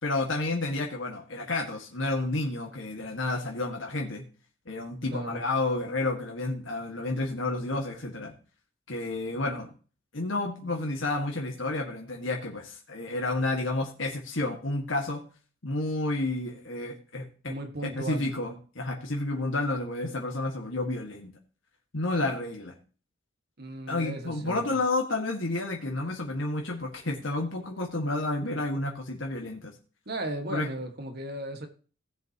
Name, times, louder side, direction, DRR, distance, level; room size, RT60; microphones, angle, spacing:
voice 1, 0.0-4.2 4.6-8.3 8.9-9.7 10.1-15.2 15.6-17.5 17.8-21.3 21.9-22.8 23.9-29.7 30.5-30.7, left 2 dB, 70° left, 1 dB, 1.8 m, -30 dB
voice 2, 5.0-5.4 17.5-18.3 23.6-24.8 30.0-31.7, right 1 dB, 55° right, 5 dB, 1.7 m, -36 dB
17.0 x 7.2 x 3.0 m, 0.38 s
head